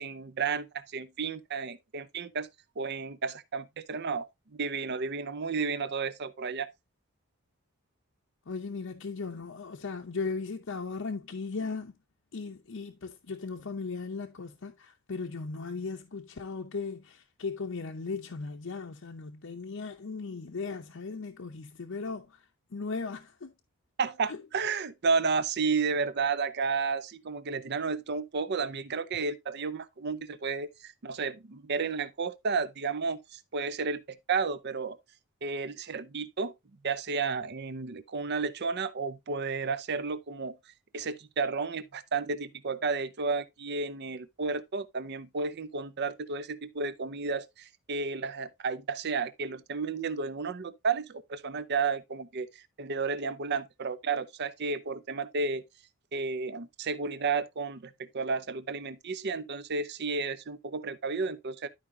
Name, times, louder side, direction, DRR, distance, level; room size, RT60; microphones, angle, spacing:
voice 1, 0.0-2.5 2.8-6.7 24.0-35.0 35.4-36.5 36.8-40.6 40.9-55.6 56.1-61.7, right 4 dB, 50° right, 0.6 m, -32 dB
voice 2, 8.5-12.0 12.3-23.5 24.3-24.4, left 4 dB, 60° left, 0.7 m, -37 dB
12.0 x 4.9 x 2.7 m
head